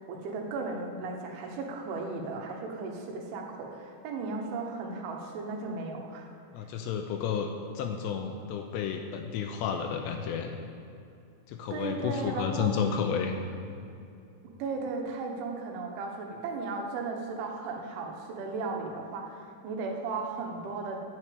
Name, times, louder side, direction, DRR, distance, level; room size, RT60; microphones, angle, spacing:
voice 1, 0.1-6.3 11.7-12.7 14.6-21.0, right 3 dB, 90° right, 1 dB, 3.7 m, -35 dB
voice 2, 6.5-7.5 7.8-10.6 11.5-13.3, left 7 dB, 85° left, 4 dB, 2.6 m, -31 dB
11.0 x 6.1 x 8.7 m, 2.6 s
omnidirectional pair, 5.3 m